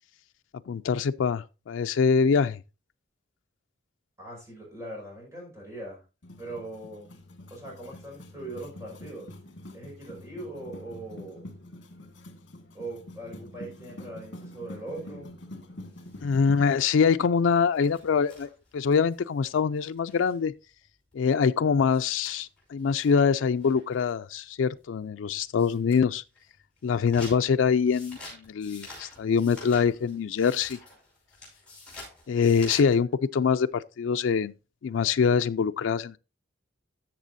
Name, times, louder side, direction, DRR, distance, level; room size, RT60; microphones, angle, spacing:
voice 1, 0.7-2.6 16.2-20.5 21.1-26.2 26.8-30.8 32.3-34.5 34.8-36.2, left 6 dB, 85° left, 0.4 m, -24 dB
voice 2, 4.2-6.0 6.4-7.1 7.5-9.3 9.7-11.5 12.7-15.3, right 2 dB, 15° right, 5.2 m, -40 dB
sound 1, 6.2-16.7, left 1 dB, 65° left, 1.7 m, -45 dB
sound 2, 15.9-20.4 20.8-20.9 21.1-21.2 21.5-21.6 21.8-24.2 24.8-24.9 25.4-26.0 26.4-33.0, left 2 dB, 5° left, 5.8 m, -48 dB
13.5 x 7.3 x 2.6 m
head